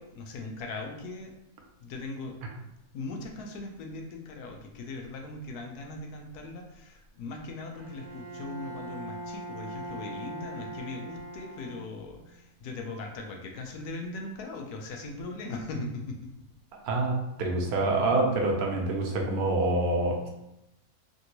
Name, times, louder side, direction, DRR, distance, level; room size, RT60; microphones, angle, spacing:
voice 1, 0.0-1.3 1.8-2.4 2.6-16.3, left 2 dB, 85° left, 2 dB, 1.1 m, -39 dB
Bowed string instrument, 7.7-12.3, right 1 dB, 25° right, 0.8 m, -41 dB
voice 2, 16.8-20.3, right 2 dB, 80° right, 1 dB, 1.1 m, -26 dB
3.3 x 2.7 x 2.9 m, 0.90 s
omnidirectional pair, 1.6 m